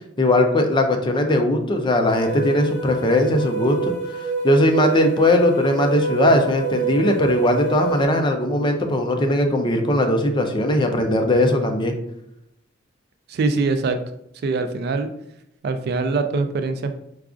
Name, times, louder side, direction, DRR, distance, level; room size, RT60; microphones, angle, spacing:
voice 1, 0.2-3.9 4.4-11.9, left 1 dB, 25° left, 5 dB, 0.4 m, -19 dB
sound 1, 2.1-8.1, right 6 dB, 85° right, 0.8 m, -27 dB
voice 2, 13.3-14.0 14.4-15.1 15.6-17.0, right 3 dB, 55° right, 8 dB, 0.3 m, -23 dB
4.7 x 2.3 x 2.4 m, 0.78 s
head